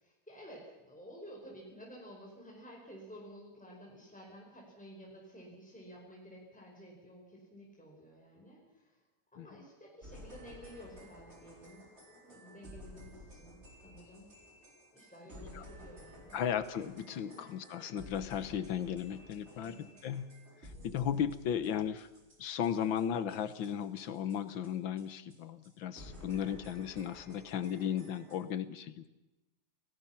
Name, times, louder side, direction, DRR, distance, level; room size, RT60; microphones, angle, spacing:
voice 1, 0.0-9.0 9.3-14.3 14.9-16.4 17.3-17.5 19.5-19.9 20.7-21.0, equal, 5° left, -2 dB, 5.1 m, -52 dB
sound 1, 10.0-24.7 25.0-25.1 25.3-25.4 25.6-25.7 26.0-28.4, left 1 dB, 30° right, 4.7 m, -54 dB
voice 2, 16.3-22.1 22.4-29.1, left 9 dB, 65° left, 13 dB, 1.7 m, -36 dB
29.0 x 17.5 x 5.9 m, 1.0 s
omnidirectional pair, 2.3 m